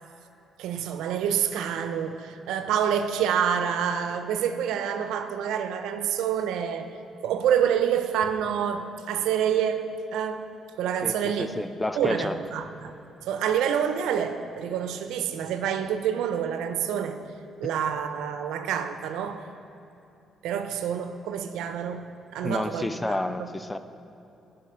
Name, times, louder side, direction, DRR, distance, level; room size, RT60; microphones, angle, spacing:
voice 1, 0.6-7.0 7.2-10.5 10.8-11.6 12.0-17.3 17.6-19.5 20.4-23.5, right 8 dB, 90° right, 8 dB, 0.4 m, -27 dB
voice 2, 11.0-12.4 22.4-23.8, left 1 dB, 10° left, 11 dB, 0.4 m, -30 dB
11.0 x 3.8 x 4.9 m, 2.9 s
cardioid pair, 90°, 0 cm